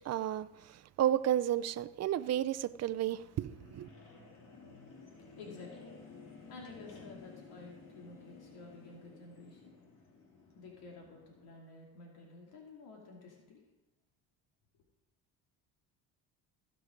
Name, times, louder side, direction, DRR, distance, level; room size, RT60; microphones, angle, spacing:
voice 1, 0.1-0.5 1.0-3.9, right 11 dB, 45° right, 14 dB, 0.5 m, -32 dB
sound 1, 1.7-11.5, left 4 dB, 55° left, 2.9 m, -55 dB
voice 2, 5.4-6.0 6.4-9.8 10.6-13.6, left 3 dB, 75° left, -1 dB, 2.5 m, -52 dB
16.0 x 6.2 x 5.1 m, 1.0 s
cardioid pair, 115°, 38 cm